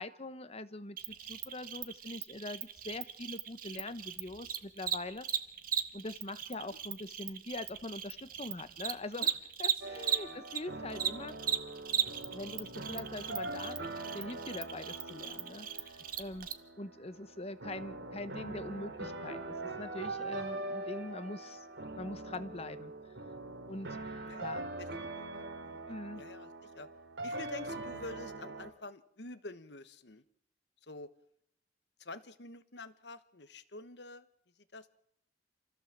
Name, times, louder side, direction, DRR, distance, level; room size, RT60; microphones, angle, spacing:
voice 1, 0.0-5.3 5.9-11.3 12.3-16.5 16.8-21.7 22.0-22.9 23.7-24.0 24.4-24.6 25.9-26.2, left 2 dB, 35° left, 13 dB, 1.0 m, -43 dB
Cricket, 1.0-10.6 10.9-16.5, right 9 dB, 50° right, 1.5 m, -37 dB
sound 1, 9.8-28.7, right 2 dB, 90° right, 2.7 m, -43 dB
voice 2, 24.2-25.8 26.1-26.9 27.2-30.2 30.8-31.1 32.0-34.3 34.6-34.9, left 3 dB, 65° left, 13 dB, 1.2 m, -48 dB
27.5 x 15.5 x 7.4 m, 0.77 s
head